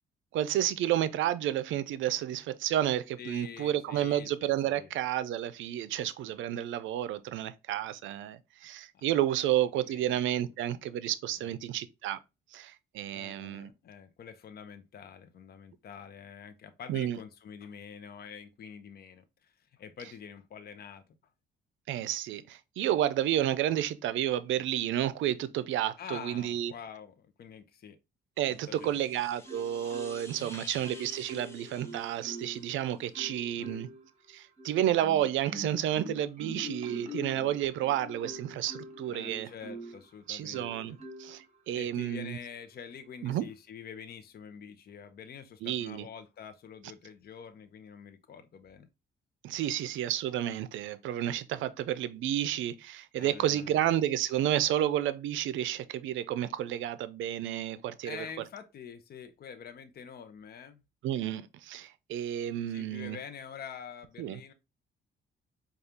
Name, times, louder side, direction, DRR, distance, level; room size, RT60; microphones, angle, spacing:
voice 1, 0.3-12.2 12.5-13.7 16.9-17.2 21.9-26.7 28.4-33.9 34.3-39.5 40.3-42.4 43.2-43.4 45.6-46.1 49.4-58.2 61.0-63.2 64.2-64.4, right 12 dB, 80° right, 0.4 m, -31 dB
voice 2, 3.2-4.9 8.9-9.1 9.6-10.5 11.4-11.6 13.1-21.0 26.0-28.0 28.5-29.1 30.4-30.7 33.6-33.9 39.1-41.0 41.7-48.9 53.2-53.8 58.0-60.8 62.7-64.5, left 7 dB, 50° left, 0.6 m, -46 dB
sound 1, 28.4-33.1, left 2 dB, 15° left, 0.8 m, -51 dB
Marimba xylophone, 29.5-30.4 30.8-32.7 33.1-34.0 34.6-40.0 40.5-41.4 42.0-42.2, equal, 35° right, 0.9 m, -44 dB
4.9 x 2.3 x 2.8 m
cardioid pair, 90°, 20 cm